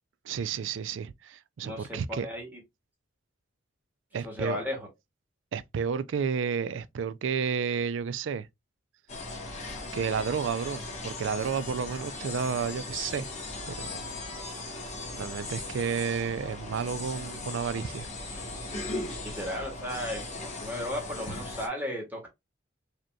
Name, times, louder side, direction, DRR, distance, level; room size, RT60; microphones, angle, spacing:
voice 1, 0.2-2.3 4.1-4.6 5.5-8.5 9.9-13.3 13.7-14.0 15.1-18.1, right 6 dB, 70° right, 0.3 m, -31 dB
voice 2, 1.6-2.6 4.2-4.9 9.7-9.8 19.2-22.3, left 1 dB, 10° right, 1.4 m, -35 dB
sound 1, 9.1-21.7, left 2 dB, 35° left, 1.2 m, -38 dB
5.0 x 2.9 x 2.3 m
head